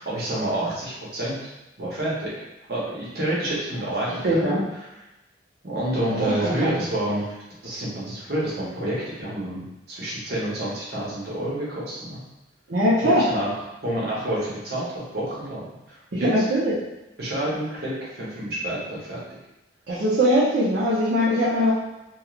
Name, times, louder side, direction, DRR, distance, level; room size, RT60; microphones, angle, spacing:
voice 1, 0.0-1.4 1.8-2.3 2.7-4.5 5.6-7.4 7.6-12.2 13.0-13.5 13.8-16.4 17.2-19.2, right 1 dB, 60° right, -6 dB, 0.9 m, -28 dB
voice 2, 4.2-4.6 6.2-6.8 12.7-13.2 16.1-16.8 19.9-21.7, equal, 80° right, -9 dB, 0.7 m, -21 dB
3.1 x 2.3 x 2.4 m, 0.96 s
head